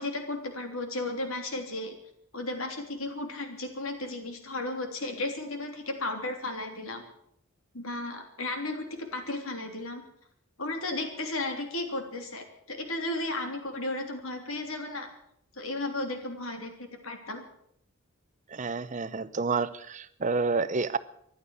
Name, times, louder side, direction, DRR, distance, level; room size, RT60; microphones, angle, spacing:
voice 1, 0.0-1.9 2.3-7.0 7.7-10.0 10.6-15.1 15.5-17.4, left 2 dB, 75° left, 5 dB, 3.2 m, -34 dB
voice 2, 18.5-21.0, right 4 dB, 35° right, 14 dB, 0.7 m, -29 dB
15.0 x 11.0 x 8.4 m, 0.71 s
head